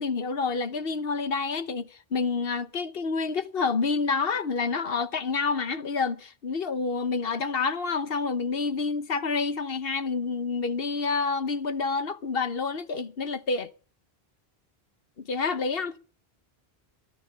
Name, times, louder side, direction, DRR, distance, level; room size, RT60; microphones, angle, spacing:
voice 1, 0.0-13.7 15.2-15.9, left 4 dB, 65° left, 1.3 m, -28 dB
16.5 x 12.5 x 5.9 m
omnidirectional pair, 1.1 m